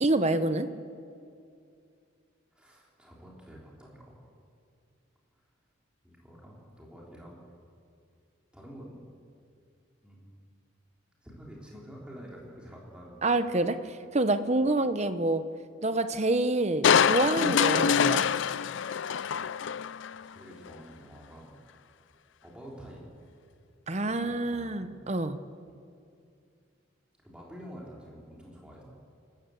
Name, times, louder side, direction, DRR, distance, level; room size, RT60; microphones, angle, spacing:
voice 1, 0.0-0.7 13.2-15.4 15.8-18.2 23.9-25.4, right 2 dB, 35° right, 10 dB, 0.9 m, -27 dB
voice 2, 2.5-4.2 6.0-7.4 8.5-9.0 10.0-10.5 11.2-13.3 20.2-21.6 22.4-23.1 24.0-25.0 27.2-28.8, equal, 5° right, -4 dB, 3.5 m, -48 dB
Crushing, 16.8-20.2 20.7-20.8, left 7 dB, 65° left, 0.4 m, -25 dB
28.5 x 13.5 x 7.8 m, 2.4 s
head